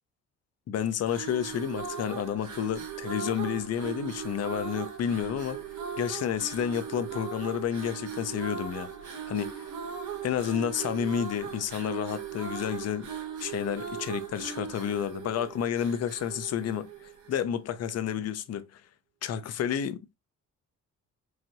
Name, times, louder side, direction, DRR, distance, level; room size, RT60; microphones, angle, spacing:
voice 1, 0.7-5.6 6.0-8.9 9.3-9.7 10.2-13.1 13.4-18.8 19.2-20.1, left 9 dB, 55° left, 0.7 m, -30 dB
sound 1, 1.0-17.5, right 7 dB, 75° right, 1.4 m, -38 dB
4.8 x 2.5 x 2.9 m
cardioid pair, 90°, 30 cm